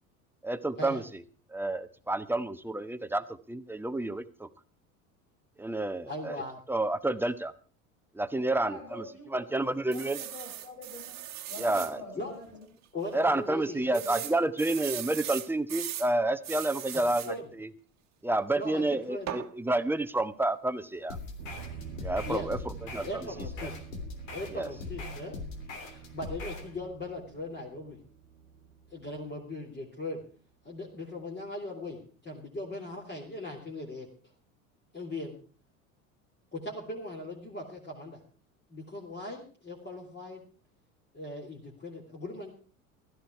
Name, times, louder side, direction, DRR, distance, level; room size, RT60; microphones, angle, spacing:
voice 1, 0.4-1.2 1.5-4.5 5.6-6.4 6.7-7.5 8.1-9.0 9.3-10.2 11.6-12.0 13.1-17.7 18.2-21.2 22.0-23.3 24.5-24.7, right 2 dB, 5° right, 11 dB, 0.9 m, -30 dB
voice 2, 6.1-6.6 12.2-12.3 12.9-14.5 17.3-17.5 18.6-19.3 22.2-22.5 23.0-23.8 24.3-25.4 25.8-28.0 28.9-30.2 30.6-34.1 34.9-35.3 36.5-38.2 38.7-40.4 41.1-42.6, left 2 dB, 25° left, -2 dB, 3.5 m, -39 dB
voice 3, 8.3-11.2 11.4-12.6, left 1 dB, 90° left, 1 dB, 6.7 m, -46 dB
sound 1, 9.9-11.9 12.5-12.6 12.8-12.9 13.9-16.1 16.4-17.3 19.3-19.5, right 12 dB, 40° right, 1.5 m, -39 dB
sound 2, 21.1-26.7, left 3 dB, 70° left, 3.2 m, -41 dB
sound 3, 21.4-30.2, right 7 dB, 85° right, 1.4 m, -47 dB
15.5 x 13.0 x 4.7 m, 0.40 s
hypercardioid pair, 75°, 41 cm